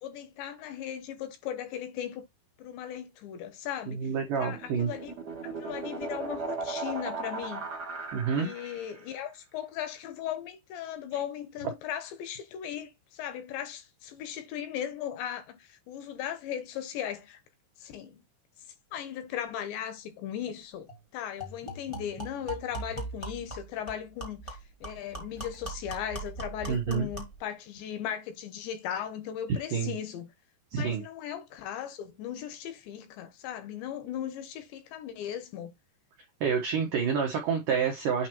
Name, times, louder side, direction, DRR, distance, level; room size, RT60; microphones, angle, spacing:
voice 1, 0.0-2.2 2.6-4.0 4.4-5.1 5.6-7.7 8.4-17.4 17.8-18.2 18.9-20.9 21.1-30.3 30.8-35.7, left 10 dB, 75° left, 3.1 m, -37 dB
voice 2, 3.9-4.9 8.1-8.5 26.7-27.1 29.5-29.9 30.7-31.0 36.4-38.3, right 6 dB, 75° right, 1.9 m, -28 dB
sound 1, 4.2-9.0, right 4 dB, 50° right, 1.2 m, -37 dB
sound 2, 20.5-20.6 20.9-21.0 21.4-27.4, right 2 dB, 15° left, 0.9 m, -40 dB
8.6 x 3.0 x 4.5 m
omnidirectional pair, 5.6 m